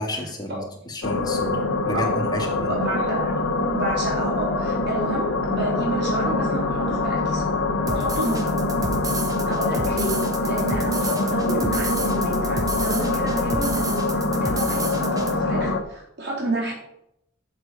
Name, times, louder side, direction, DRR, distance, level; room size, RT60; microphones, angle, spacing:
voice 1, 0.0-2.7, left 1 dB, 20° left, 1 dB, 1.8 m, -31 dB
sound 1, 1.0-15.8, left 2 dB, 85° left, 1.1 m, -24 dB
voice 2, 2.6-3.3 3.7-7.6 7.9-8.6 9.5-16.7, right 2 dB, 55° right, -4 dB, 3.8 m, -30 dB
sound 2, 7.9-15.3, right 2 dB, 15° right, 1.1 m, -31 dB
7.6 x 7.0 x 5.7 m, 0.78 s
head